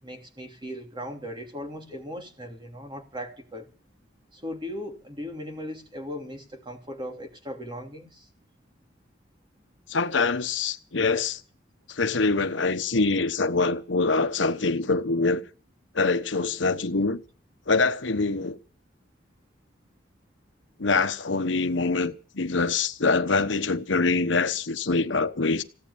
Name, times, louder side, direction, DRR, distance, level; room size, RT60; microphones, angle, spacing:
voice 1, 0.0-3.7 4.3-8.3, equal, 25° right, 3.0 m, -38 dB
voice 2, 9.9-11.4 11.9-15.4 15.9-17.2 17.7-18.6 20.8-25.6, left 3 dB, 85° left, 1.1 m, -24 dB
16.5 x 8.5 x 8.7 m
head